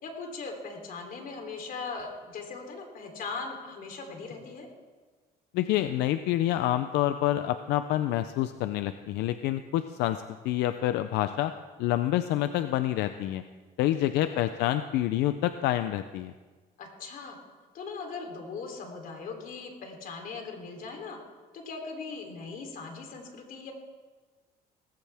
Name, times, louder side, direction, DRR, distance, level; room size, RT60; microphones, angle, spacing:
voice 1, 0.0-4.7 13.9-14.4 16.8-17.4 17.7-21.2 21.5-23.7, left 4 dB, 55° left, 3 dB, 3.4 m, -39 dB
voice 2, 5.5-11.5 11.8-13.4 13.8-16.3, left 13 dB, 85° left, 10 dB, 0.6 m, -27 dB
19.0 x 16.0 x 3.5 m, 1.4 s
cardioid pair, 110°, 17 cm